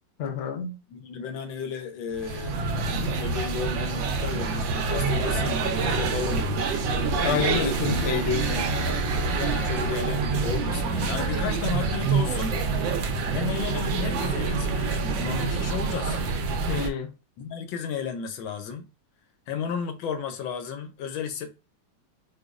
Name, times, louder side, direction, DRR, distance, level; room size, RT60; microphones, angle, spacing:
voice 1, 0.2-0.8 7.2-8.7 16.7-17.1, left 6 dB, 60° left, 0.7 m, -28 dB
voice 2, 0.9-2.6 2.9-6.5 7.8-8.7 9.3-12.6 13.3-16.2 17.4-18.9 19.5-21.5, left 6 dB, 90° left, 1.4 m, -34 dB
sound 1, 2.1-16.9, right 4 dB, 85° right, 1.4 m, -26 dB
4.9 x 2.3 x 2.4 m
omnidirectional pair, 2.0 m